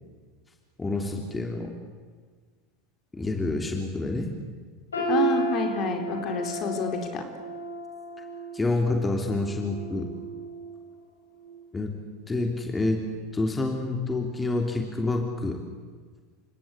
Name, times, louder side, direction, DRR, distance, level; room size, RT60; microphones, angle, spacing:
voice 1, 0.8-1.7 3.1-4.3 8.5-10.1 11.7-11.9 12.3-13.0 13.3-15.6, left 2 dB, 15° left, 3 dB, 3.1 m, -28 dB
sound 1, 4.9-10.9 11.3-11.5 12.2-12.3, right 3 dB, 85° left, 5.4 m, -32 dB
voice 2, 5.1-7.2, left 5 dB, 45° left, 5 dB, 4.2 m, -29 dB
29.5 x 17.5 x 8.4 m, 1.5 s
hypercardioid pair, 85°, 0 cm